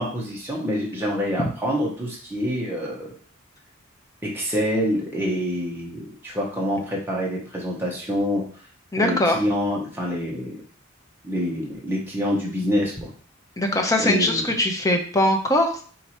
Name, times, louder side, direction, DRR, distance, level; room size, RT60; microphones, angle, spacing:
voice 1, 0.0-3.1 4.2-8.4 9.0-10.6 11.2-13.1 14.0-14.5, equal, 10° right, -3 dB, 0.9 m, -26 dB
voice 2, 8.9-9.4 13.6-15.8, left 1 dB, 15° left, 3 dB, 0.7 m, -21 dB
4.4 x 2.6 x 4.3 m, 0.44 s
head